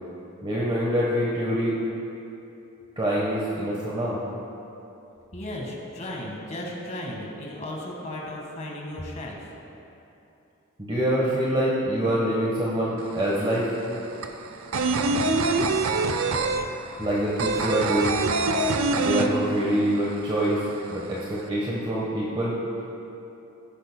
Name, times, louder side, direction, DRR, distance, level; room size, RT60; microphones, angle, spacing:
voice 1, 0.4-1.8 3.0-4.2 10.8-13.7 17.0-18.2 19.0-20.6 20.9-22.5, equal, 25° right, -6 dB, 1.2 m, -25 dB
voice 2, 5.3-9.4, left 1 dB, 35° left, -2 dB, 1.7 m, -35 dB
sound 1, 13.0-13.1 13.3-19.9 20.2-20.3 20.6-21.4, right 3 dB, 75° right, 0.6 m, -24 dB
15.5 x 10.5 x 2.2 m, 2.9 s
head